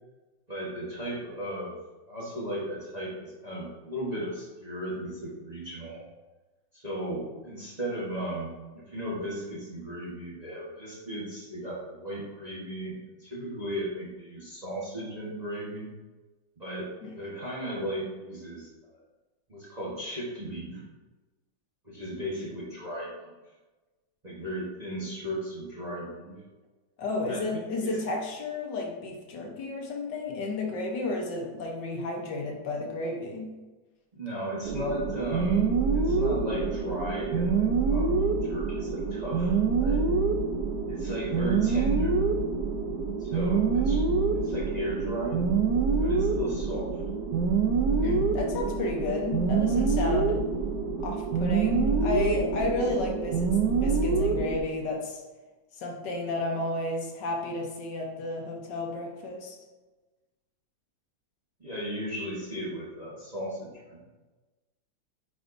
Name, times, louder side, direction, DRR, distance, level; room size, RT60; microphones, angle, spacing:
voice 1, 0.5-1.8 2.1-6.0 6.7-15.9 16.6-18.7 19.5-20.8 21.8-23.3 24.2-26.3 27.3-28.0 34.1-35.7 35.9-38.1 38.4-40.0 40.9-42.3 43.2-44.1 44.3-45.5 45.9-47.0 61.6-64.0, equal, 25° right, -6 dB, 1.1 m, -36 dB
voice 2, 27.0-33.5 48.0-50.4 51.0-55.2 55.7-59.6, left 2 dB, 65° left, 1 dB, 1.5 m, -32 dB
sound 1, 34.6-54.6, right 4 dB, 70° right, 1.1 m, -26 dB
8.8 x 4.9 x 2.6 m, 1.2 s
omnidirectional pair, 2.2 m